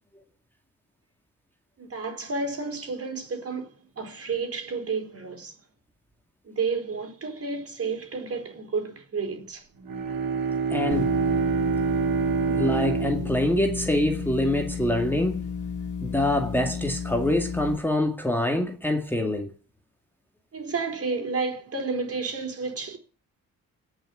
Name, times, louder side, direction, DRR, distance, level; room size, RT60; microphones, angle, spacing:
voice 1, 1.8-5.5 6.5-9.6 20.5-23.0, right 4 dB, 40° right, 4.5 m, -31 dB
Bowed string instrument, 9.8-14.6, right 6 dB, 80° right, 2.6 m, -27 dB
voice 2, 10.7-11.1 12.5-15.4 16.0-19.5, left 1 dB, 5° left, 2.1 m, -25 dB
sound 1, 10.9-17.8, left 7 dB, 60° left, 1.9 m, -33 dB
18.0 x 6.4 x 9.9 m
wide cardioid pair, 135°, 35 cm